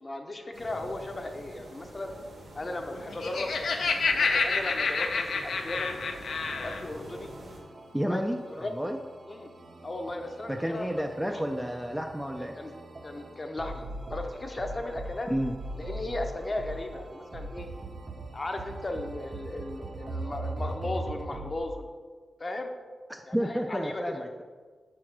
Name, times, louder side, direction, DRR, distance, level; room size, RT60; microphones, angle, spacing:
voice 1, 0.0-2.1 2.5-3.5 4.0-6.0 6.6-7.3 8.0-8.2 8.5-8.7 9.3-9.5 9.8-11.4 12.4-12.7 13.0-15.3 15.8-17.7 18.3-21.9 22.4-22.7 23.3-24.2, left 2 dB, 25° left, 4 dB, 0.7 m, -36 dB
sound 1, 0.5-7.6, right 1 dB, 85° right, 2.3 m, -46 dB
Laughter, 3.0-6.8, left 4 dB, 75° left, 0.6 m, -28 dB
sound 2, 5.6-21.6, right 2 dB, 45° right, 0.7 m, -41 dB
voice 2, 7.9-8.4 8.7-9.0 10.5-12.5 15.3-15.5 23.1-24.4, equal, 5° right, 3 dB, 0.4 m, -31 dB
6.1 x 4.7 x 5.8 m, 1.5 s
wide cardioid pair, 145°, 0 cm